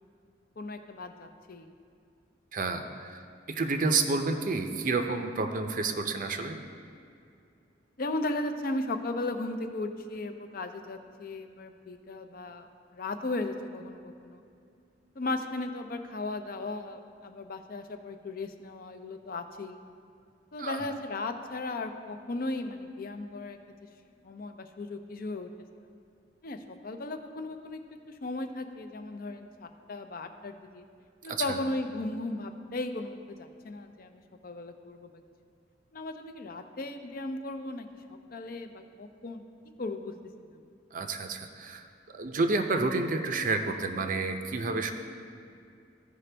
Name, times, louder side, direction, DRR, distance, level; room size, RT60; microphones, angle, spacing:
voice 1, 0.6-1.7 8.0-12.7 12.9-14.4 15.2-19.8 20.5-23.6 24.2-25.5 26.4-27.8 28.1-30.8 31.2-35.1 35.9-37.9 38.3-39.5 39.8-40.1 40.4-40.5, left 2 dB, 50° left, 7 dB, 0.5 m, -36 dB
voice 2, 2.5-3.2 3.5-6.6 20.6-20.8 31.3-31.6 40.9-44.9, right 3 dB, 45° right, 6 dB, 0.5 m, -30 dB
15.0 x 5.0 x 3.3 m, 2.4 s
head